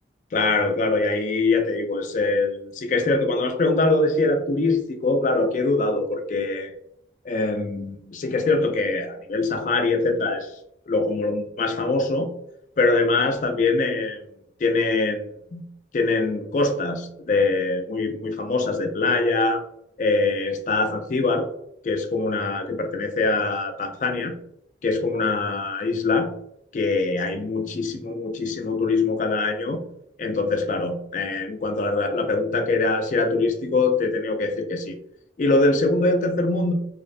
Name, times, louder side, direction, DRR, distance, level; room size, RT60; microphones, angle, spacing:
voice 1, 0.3-6.7 7.3-10.5 10.9-12.3 12.8-14.2 14.6-15.2 15.5-15.6 15.9-19.6 20.0-21.5 21.8-24.3 24.8-26.3 26.7-29.8 30.2-35.0 35.4-36.7, left 3 dB, 45° left, 5 dB, 0.3 m, -23 dB
2.4 x 2.1 x 2.5 m, 0.75 s
head